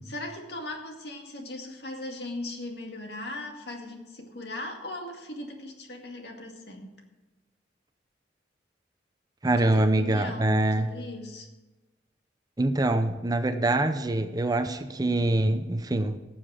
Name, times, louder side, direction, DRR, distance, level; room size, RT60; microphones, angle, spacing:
voice 1, 0.0-6.9 9.6-11.5, left 2 dB, 65° left, 2 dB, 2.1 m, -38 dB
voice 2, 9.4-10.9 12.6-16.2, right 2 dB, 20° right, 9 dB, 0.6 m, -24 dB
17.5 x 7.2 x 5.0 m, 1.2 s
head